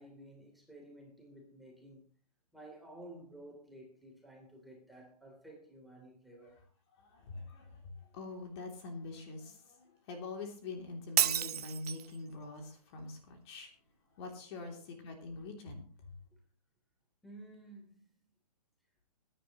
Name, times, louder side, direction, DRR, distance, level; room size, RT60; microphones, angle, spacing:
voice 1, 0.0-2.0 2.5-6.6 14.6-14.8 17.2-18.0, right 1 dB, ahead, 0 dB, 3.4 m, -53 dB
voice 2, 7.0-13.7 14.2-15.8, left 3 dB, 40° left, 3 dB, 3.1 m, -44 dB
Shatter, 11.2-12.2, right 9 dB, 70° right, 0.6 m, -30 dB
20.0 x 10.0 x 3.1 m, 0.42 s
hypercardioid pair, 140°, 20 cm